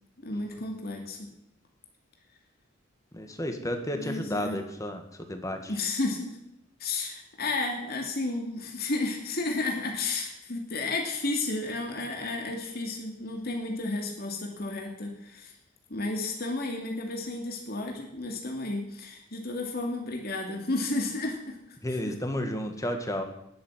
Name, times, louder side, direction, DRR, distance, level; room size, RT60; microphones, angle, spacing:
voice 1, 0.2-1.3 3.9-4.6 5.7-6.4 6.8-15.5 15.9-21.8 22.1-22.2, left 2 dB, 50° left, 1 dB, 2.6 m, -32 dB
voice 2, 3.1-5.0 5.3-5.7 21.8-23.2, left 1 dB, 15° left, 6 dB, 1.9 m, -32 dB
20.0 x 7.8 x 7.4 m, 0.79 s
head